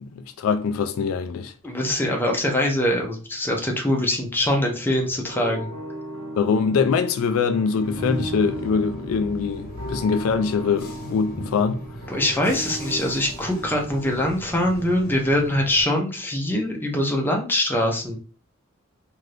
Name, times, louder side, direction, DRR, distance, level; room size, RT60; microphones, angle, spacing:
voice 1, 0.0-1.5 6.4-11.8, left 5 dB, 70° left, 0.3 m, -23 dB
voice 2, 1.6-5.7 12.1-18.2, left 1 dB, 10° left, 0.6 m, -23 dB
sound 1, 5.3-14.3, right 1 dB, 75° right, 0.6 m, -36 dB
Bus / Engine, 7.8-15.8, equal, 45° left, 0.9 m, -38 dB
2.7 x 2.5 x 3.2 m
head